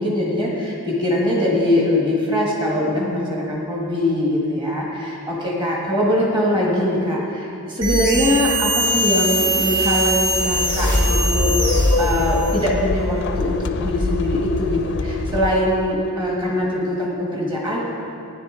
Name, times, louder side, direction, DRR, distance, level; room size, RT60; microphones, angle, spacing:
voice 1, 0.0-7.5 7.8-17.9, left 1 dB, 20° right, -4 dB, 1.6 m, -22 dB
sound 1, 7.8-12.7, right 1 dB, 80° right, 2.5 m, -21 dB
sound 2, 10.2-16.1, left 3 dB, 55° left, 0.4 m, -25 dB
15.0 x 10.0 x 3.8 m, 2.6 s
head